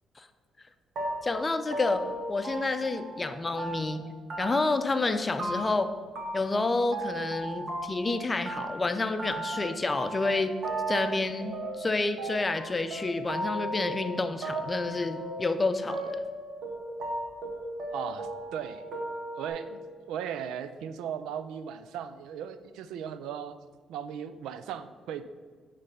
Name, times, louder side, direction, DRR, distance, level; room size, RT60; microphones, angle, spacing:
sound 1, 1.0-3.3 3.6-4.0 4.3-4.8 5.0-5.9 6.2-8.2 8.5-19.5, right 2 dB, 60° right, 1.4 m, -36 dB
voice 1, 1.2-2.0 2.3-4.1 4.4-5.9 6.3-10.5 10.9-16.2, left 3 dB, 25° left, 9 dB, 0.5 m, -29 dB
voice 2, 17.9-18.8 19.4-19.8 20.1-23.6 23.9-25.2, right 8 dB, 90° right, 12 dB, 0.4 m, -37 dB
8.7 x 3.3 x 5.6 m, 1.5 s
cardioid pair, 90°, 0 cm